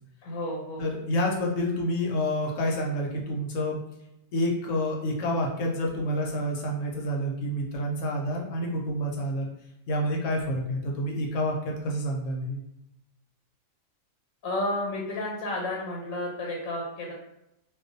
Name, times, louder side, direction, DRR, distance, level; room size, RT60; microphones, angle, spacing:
voice 1, 0.2-0.9 14.4-17.1, left 1 dB, 90° left, -2 dB, 1.1 m, -31 dB
voice 2, 0.8-3.8 4.3-9.5 9.9-12.6, equal, 75° left, 0 dB, 0.9 m, -28 dB
2.4 x 2.2 x 2.5 m, 0.87 s
omnidirectional pair, 1.4 m